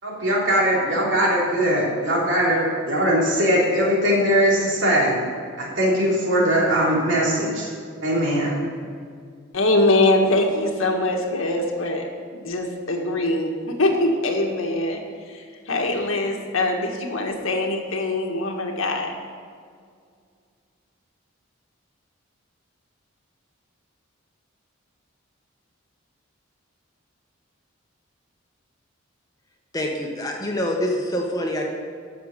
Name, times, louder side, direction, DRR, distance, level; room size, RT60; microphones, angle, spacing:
voice 1, 0.0-5.2 5.6-7.7 8.0-8.6, equal, 60° right, -4 dB, 3.3 m, -20 dB
voice 2, 9.5-19.1, left 2 dB, 80° left, 2 dB, 1.7 m, -23 dB
voice 3, 29.7-31.7, left 1 dB, 20° left, 0 dB, 1.3 m, -25 dB
13.0 x 6.7 x 6.7 m, 2.2 s
head